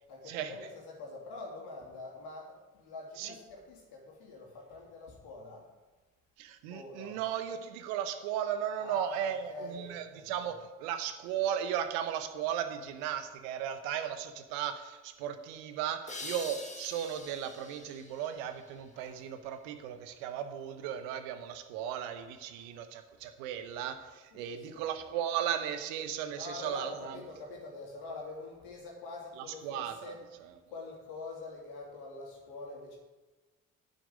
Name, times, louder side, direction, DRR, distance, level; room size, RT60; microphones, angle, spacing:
voice 1, 0.1-5.6 6.7-7.2 8.8-10.5 18.9-19.1 24.3-24.8 26.4-30.2 30.7-33.0, left 3 dB, 65° left, 0 dB, 3.0 m, -45 dB
voice 2, 6.4-10.5 10.8-27.2 29.4-30.1 30.4-30.6, right 9 dB, 70° right, 8 dB, 1.1 m, -36 dB
sound 1, 16.1-19.5, left 2 dB, 15° left, 1.8 m, -46 dB
9.9 x 9.2 x 5.2 m, 1.2 s
figure-of-eight pair, 50°, 42 cm